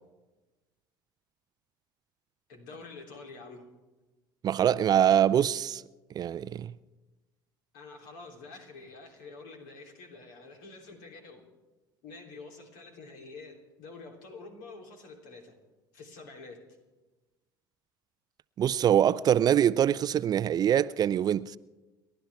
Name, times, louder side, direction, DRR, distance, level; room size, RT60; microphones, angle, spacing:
voice 1, 2.5-3.6 7.7-11.4 12.0-15.5 15.9-16.6, left 3 dB, 70° left, 3.3 m, -47 dB
voice 2, 4.4-5.8 6.1-6.7 18.6-21.6, right 10 dB, 35° right, 0.4 m, -24 dB
30.0 x 12.0 x 3.5 m
hypercardioid pair, 70°, 11 cm